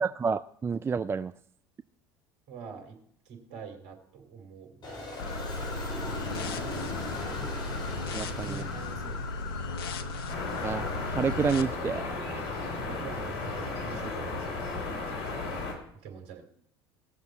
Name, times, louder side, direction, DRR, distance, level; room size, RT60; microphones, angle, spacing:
voice 1, 0.0-1.3 8.1-8.6 10.6-12.4, right 5 dB, 20° right, 13 dB, 0.3 m, -30 dB
voice 2, 2.5-3.0 3.2-4.8 5.1-5.7 8.1-9.3 10.0-10.4 12.8-15.6 15.9-16.4, right 6 dB, 55° right, 4 dB, 2.8 m, -45 dB
Aircraft, 4.8-11.5, left 1 dB, 35° left, 4.6 m, -40 dB
sound 1, 5.2-11.6, left 3 dB, 75° left, 0.8 m, -36 dB
sound 2, 10.3-15.7, left 3 dB, 55° left, 3.0 m, -34 dB
18.5 x 6.7 x 4.4 m, 0.67 s
figure-of-eight pair, 70°, 13 cm